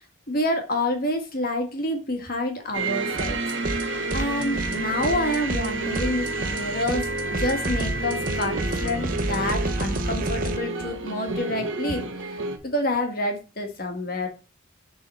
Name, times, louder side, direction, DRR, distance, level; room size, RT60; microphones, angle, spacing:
voice 1, 0.3-3.4 4.1-12.4 12.6-14.3, left 1 dB, 45° left, 4 dB, 1.7 m, -28 dB
sound 1, 2.7-12.6, right 2 dB, 75° right, 1.2 m, -30 dB
sound 2, 3.2-3.8 4.1-10.6, right 2 dB, 45° right, 0.9 m, -30 dB
7.3 x 4.0 x 5.5 m, 0.32 s
head